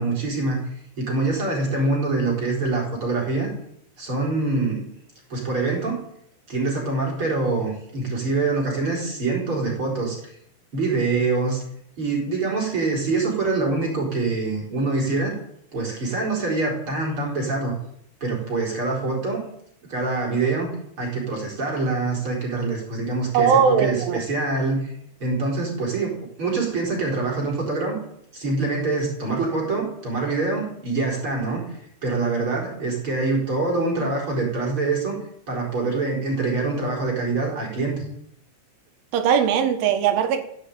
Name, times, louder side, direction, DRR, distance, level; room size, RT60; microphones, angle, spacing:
voice 1, 0.0-3.5 4.0-4.9 5.3-6.0 6.5-10.4 10.7-11.6 12.0-15.3 15.7-17.7 18.2-19.4 19.9-20.7 21.0-24.9 25.2-28.0 28.3-38.0, right 3 dB, 25° right, -2 dB, 4.7 m, -25 dB
voice 2, 23.3-24.2 39.1-40.4, right 7 dB, 75° right, 6 dB, 3.7 m, -19 dB
15.5 x 9.2 x 8.5 m, 0.73 s
omnidirectional pair, 5.8 m